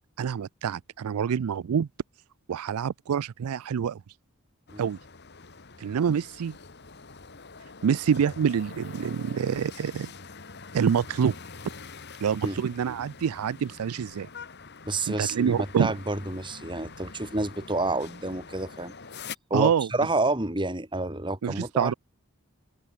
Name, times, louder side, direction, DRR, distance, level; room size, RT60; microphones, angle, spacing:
voice 1, 0.2-1.9 2.5-4.0 4.8-5.0 5.8-6.5 7.8-10.1 10.7-11.3 12.2-14.3 15.1-15.9 19.5-19.9 21.4-21.9, right 7 dB, 85° right, 0.4 m, -26 dB
sound 1, 4.7-19.3, left 5 dB, 50° left, 1.9 m, -45 dB
voice 2, 14.8-18.9 19.5-22.0, right 2 dB, 20° right, 2.9 m, -29 dB
head